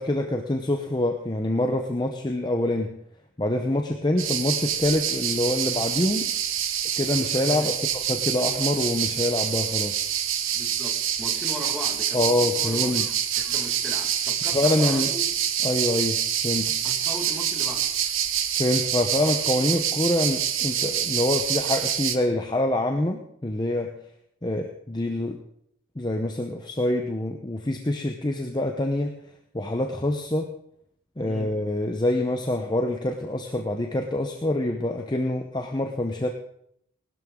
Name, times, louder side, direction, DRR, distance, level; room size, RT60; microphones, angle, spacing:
voice 1, 0.0-3.0 3.4-6.3 7.0-7.7 8.1-10.1 12.1-13.0 14.5-15.1 15.6-16.7 18.6-23.9 24.4-25.4 26.0-29.1 29.5-30.5 31.2-36.3, left 1 dB, 20° left, 4 dB, 0.7 m, -25 dB
sound 1, 4.2-22.2, right 9 dB, 70° right, 1.0 m, -26 dB
voice 2, 10.5-13.0 13.4-15.2 16.8-17.9 31.2-31.6, equal, ahead, -1 dB, 1.9 m, -38 dB
19.0 x 12.5 x 3.7 m, 0.72 s
head